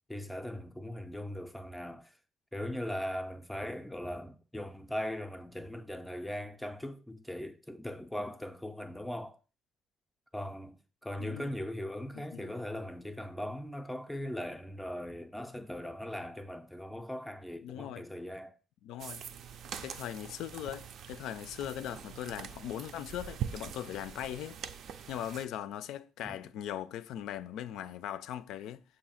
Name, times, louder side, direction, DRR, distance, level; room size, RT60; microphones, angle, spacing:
voice 1, 0.1-2.2 2.5-9.4 10.3-18.5 26.2-26.3, left 1 dB, 5° left, 0.4 m, -39 dB
voice 2, 11.2-11.5 12.1-12.6 17.6-18.0 18.8-19.2 19.8-24.6 25.1-28.8, left 11 dB, 85° left, 0.4 m, -40 dB
sound 1, 19.0-25.5, right 8 dB, 55° right, 0.4 m, -43 dB
6.9 x 2.7 x 5.6 m
cardioid pair, 165°, 0 cm